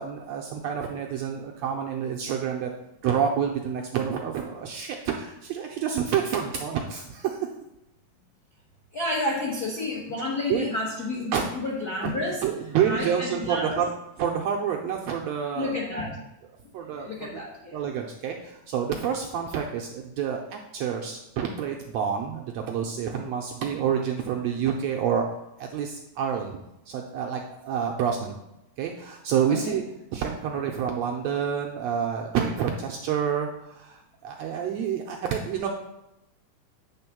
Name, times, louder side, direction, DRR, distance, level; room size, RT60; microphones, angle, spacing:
voice 1, 0.0-2.7 3.0-7.5 10.5-10.7 11.3-11.4 12.0-13.9 14.2-15.8 16.7-17.4 17.7-25.2 25.6-26.6 26.9-28.3 28.8-29.8 30.1-35.7, right 8 dB, 80° right, 1 dB, 1.5 m, -28 dB
voice 2, 8.9-12.4 12.8-13.8 15.5-16.2 16.9-17.8 29.5-29.8, left 2 dB, 75° left, -3 dB, 0.9 m, -30 dB
8.8 x 3.5 x 5.9 m, 0.88 s
omnidirectional pair, 3.6 m